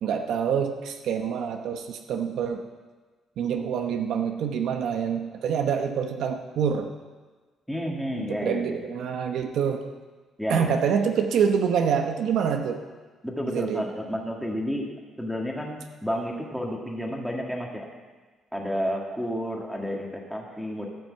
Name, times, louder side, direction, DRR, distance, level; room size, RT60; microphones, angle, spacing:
voice 1, 0.0-2.6 3.4-6.9 8.2-9.9 10.5-12.8 13.4-13.9, right 7 dB, 70° right, 5 dB, 0.9 m, -26 dB
voice 2, 7.7-8.8 10.4-10.8 13.2-14.9 15.2-17.9 18.5-20.9, equal, ahead, -1 dB, 1.8 m, -31 dB
13.5 x 6.2 x 7.5 m, 1.4 s
cardioid pair, 140°, 0 cm